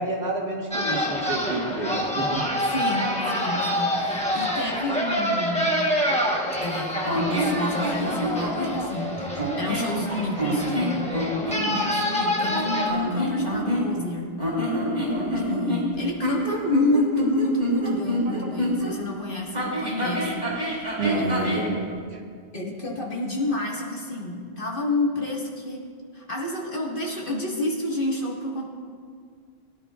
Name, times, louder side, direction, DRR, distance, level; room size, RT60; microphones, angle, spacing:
voice 1, 0.0-2.5 10.4-10.5 12.4-12.5 21.0-22.2, right 2 dB, 80° right, -2 dB, 1.9 m, -29 dB
sound 1, 0.7-12.9, equal, 5° left, 1.1 m, -27 dB
voice 2, 2.7-5.7 6.6-9.2 9.5-11.3 11.7-14.4 15.5-20.4 21.2-21.7 22.5-25.8 26.1-28.7, left 2 dB, 55° left, -3 dB, 1.9 m, -29 dB
sound 2, 7.0-8.8 9.3-9.9 10.4-11.6 12.8-14.1 14.4-18.9 19.5-21.7, equal, 40° right, 2.9 m, -26 dB
20.5 x 10.5 x 2.4 m, 2.1 s
omnidirectional pair, 1.1 m